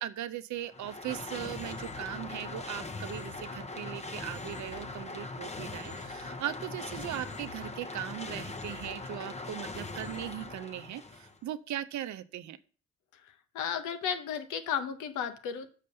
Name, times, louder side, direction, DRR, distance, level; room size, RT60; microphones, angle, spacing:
voice 1, 0.0-12.6, right 12 dB, 75° right, 13 dB, 0.7 m, -39 dB
sound 1, 0.6-11.4, left 3 dB, 20° left, 0.8 m, -41 dB
voice 2, 13.1-15.7, left 8 dB, 90° left, 9 dB, 1.0 m, -34 dB
6.6 x 5.4 x 6.6 m, 0.40 s
cardioid pair, 70°, 30 cm